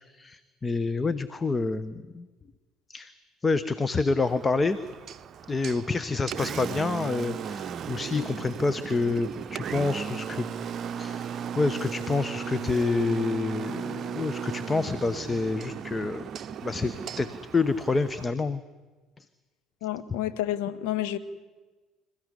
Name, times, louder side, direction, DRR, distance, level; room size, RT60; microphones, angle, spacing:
voice 1, 0.1-2.3 2.9-3.1 3.4-4.8 5.5-10.5 11.0-11.3 11.6-16.3 16.6-18.6, left 3 dB, 25° left, 1.0 m, -28 dB
Engine, 4.2-18.2, right 8 dB, 45° right, 0.7 m, -36 dB
voice 2, 19.8-21.2, left 13 dB, 70° left, 1.3 m, -29 dB
26.5 x 15.0 x 9.8 m
figure-of-eight pair, 60°, 0 cm